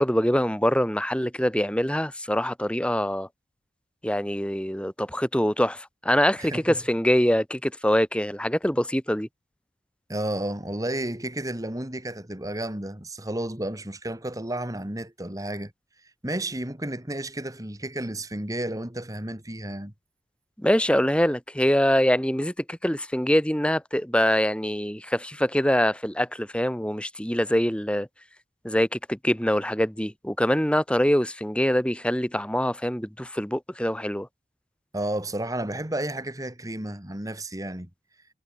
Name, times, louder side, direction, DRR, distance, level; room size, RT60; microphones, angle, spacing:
voice 1, 0.0-3.3 4.0-9.3 20.6-28.1 28.6-34.3, equal, 5° left, 3.7 m, -24 dB
voice 2, 6.4-6.8 10.1-15.7 16.2-19.9 34.9-37.9, right 1 dB, 20° right, 2.5 m, -32 dB
head